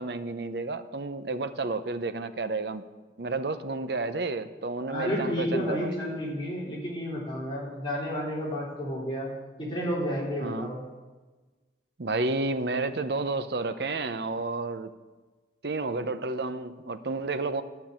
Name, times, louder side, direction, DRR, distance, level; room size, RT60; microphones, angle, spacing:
voice 1, 0.0-2.8 3.2-6.0 10.4-10.7 12.0-14.9 15.6-17.6, right 3 dB, 65° right, 0.7 m, -31 dB
voice 2, 4.9-9.3 9.6-10.8, equal, 25° left, 3.9 m, -31 dB
12.5 x 6.2 x 8.7 m
head